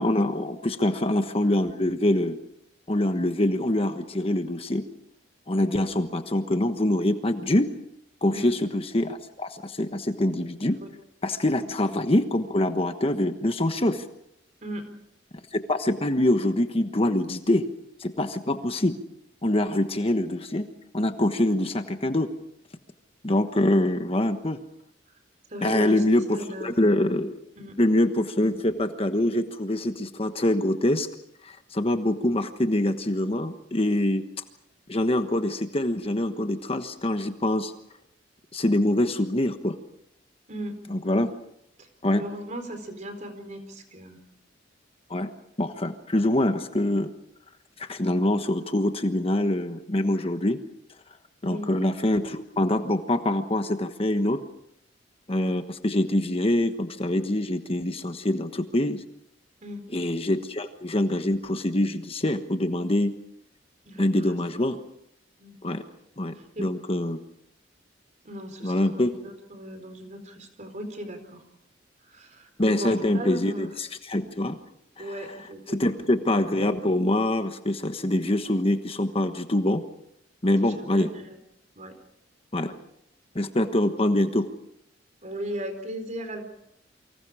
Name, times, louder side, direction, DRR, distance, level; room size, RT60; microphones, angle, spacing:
voice 1, 0.0-2.4 2.9-4.8 5.5-7.7 8.2-10.8 11.2-14.0 15.5-17.7 18.0-19.0 19.4-20.7 20.9-22.3 23.2-24.6 25.6-27.4 27.8-31.1 31.4-34.2 34.9-37.7 38.5-39.8 40.9-41.3 42.0-42.2 45.1-45.3 45.6-47.1 47.8-50.6 51.4-54.4 55.3-59.0 59.9-63.1 64.0-64.8 65.6-65.8 66.2-67.2 68.6-69.1 72.6-74.6 75.0-75.1 75.7-79.8 80.4-81.1 82.5-82.7 83.3-84.5, left 1 dB, 30° left, 8 dB, 1.3 m, -25 dB
voice 2, 14.6-14.9 25.5-26.0 26.3-26.9 27.6-27.7 40.5-40.8 41.8-41.9 42.1-44.2 51.4-51.7 59.6-59.8 63.8-64.7 65.4-65.6 66.4-66.6 68.2-71.4 72.1-73.7 75.0-76.0 80.6-81.4 81.8-82.0 85.2-86.4, equal, 40° right, 7 dB, 4.3 m, -37 dB
29.0 x 25.0 x 5.0 m, 0.75 s
head